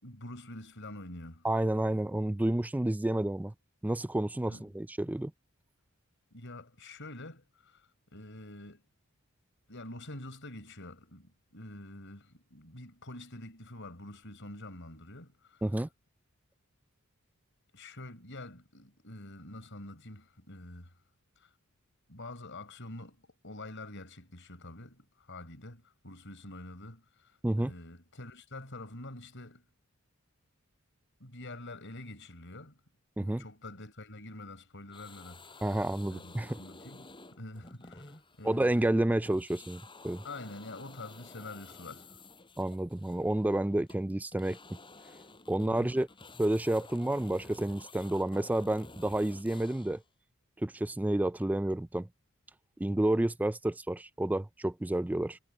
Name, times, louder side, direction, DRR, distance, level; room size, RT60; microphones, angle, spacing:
voice 1, 0.0-1.5 4.4-4.7 6.3-8.8 9.7-15.7 17.7-20.9 21.4-21.5 22.1-29.6 31.2-32.8 33.2-35.8 36.1-39.0 40.2-42.2 45.6-45.9, left 2 dB, 60° left, 5.6 m, -46 dB
voice 2, 1.4-3.5 3.8-5.3 15.6-15.9 27.4-27.7 33.2-33.4 35.6-36.6 38.4-40.2 42.6-44.6 45.5-46.1 46.4-50.0 50.6-52.1 52.8-55.4, right 1 dB, 5° right, 0.3 m, -30 dB
sound 1, 34.9-39.0 39.3-50.1, left 3 dB, 25° left, 6.4 m, -52 dB
head